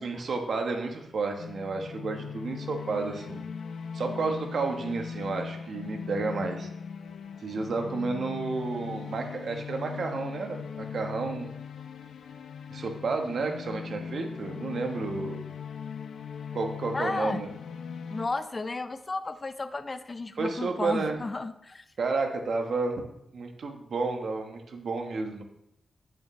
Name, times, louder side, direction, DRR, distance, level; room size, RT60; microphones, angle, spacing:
voice 1, 0.0-3.4 3.9-6.7 7.4-11.5 12.7-15.4 16.5-17.5 20.4-21.2 22.0-23.0 23.3-25.4, right 4 dB, 55° right, 4 dB, 1.1 m, -31 dB
sound 1, 1.4-18.3, left 6 dB, 85° left, 0.5 m, -39 dB
voice 2, 16.9-17.5 18.1-21.8, left 3 dB, 25° left, 11 dB, 0.4 m, -33 dB
8.3 x 7.4 x 3.1 m, 0.80 s
wide cardioid pair, 155°, 0 cm